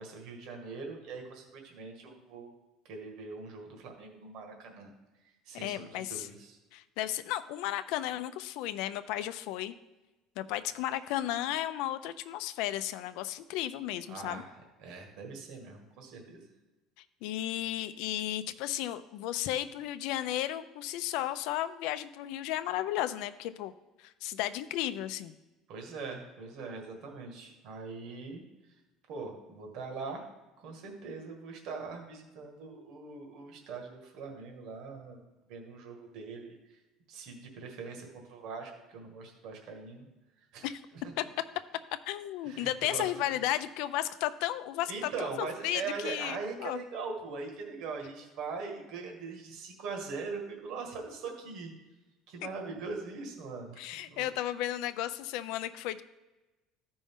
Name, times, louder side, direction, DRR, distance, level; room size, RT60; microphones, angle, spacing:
voice 1, 0.0-2.5 2.9-4.9 5.5-6.6 14.1-14.5 14.8-16.4 25.7-28.4 29.1-30.3 30.6-35.2 35.5-36.8 37.1-40.1 40.5-40.7 42.5-43.0 44.9-51.7 52.3-54.3, right 4 dB, 60° right, 2 dB, 1.6 m, -41 dB
voice 2, 5.5-6.3 6.7-9.7 10.4-14.4 17.2-23.7 24.0-25.4 40.6-40.8 41.2-41.3 42.1-44.9 45.2-46.8 53.8-56.0, left 13 dB, 70° left, 12 dB, 0.4 m, -34 dB
13.5 x 5.2 x 3.6 m, 1.1 s
cardioid pair, 155°, 0 cm